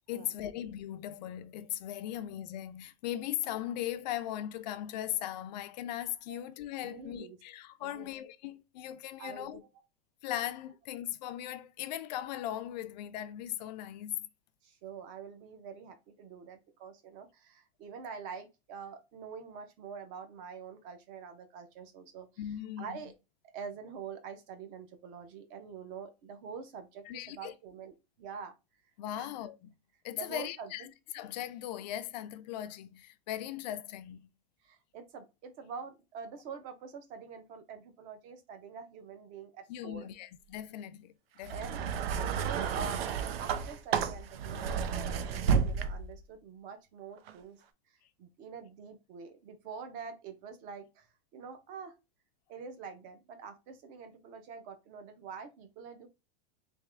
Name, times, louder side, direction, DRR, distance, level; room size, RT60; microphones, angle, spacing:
voice 1, 0.1-9.6 10.2-14.3 22.4-23.0 27.1-27.5 29.0-29.7 30.0-34.3 39.7-41.6, left 12 dB, 50° left, 0.4 m, -38 dB
voice 2, 6.8-7.4 7.8-8.1 9.2-9.7 14.6-22.3 22.8-23.1 23.5-28.5 29.2-29.3 30.2-30.9 34.6-40.1 41.5-41.9 42.1-43.0 43.4-47.6 48.2-51.1 51.3-51.9 52.5-56.1, right 6 dB, 25° right, 0.6 m, -45 dB
sound 1, 41.4-46.2 47.2-47.3, right 7 dB, 90° right, 0.7 m, -31 dB
3.5 x 2.9 x 3.2 m
supercardioid pair, 175°, 29 cm